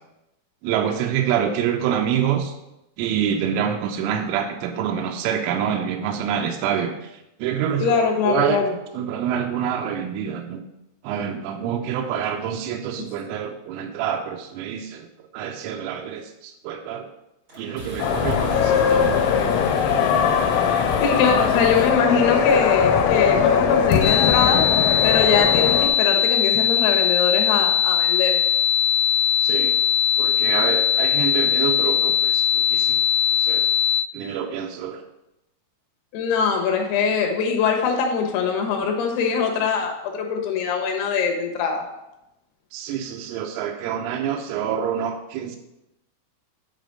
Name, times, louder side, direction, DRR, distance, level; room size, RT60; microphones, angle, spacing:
voice 1, 0.6-2.5 3.0-7.0 7.4-8.7 8.9-10.6 11.0-15.1 15.3-17.1 17.6-19.1 29.4-29.8 30.2-33.0 33.4-33.7 34.1-35.0 42.7-45.6, right 8 dB, 90° right, 3 dB, 3.2 m, -26 dB
voice 2, 7.8-8.7 13.0-13.1 21.0-24.6 25.0-28.4 36.1-41.8, left 6 dB, 70° left, 2 dB, 2.8 m, -22 dB
sound 1, 17.5-22.7, left 1 dB, 60° right, 0.8 m, -37 dB
sound 2, 18.0-25.9, left 7 dB, 85° left, 3.0 m, -20 dB
sound 3, 24.0-34.0, left 9 dB, 50° left, 2.2 m, -20 dB
7.9 x 5.0 x 5.3 m, 0.89 s
omnidirectional pair, 5.6 m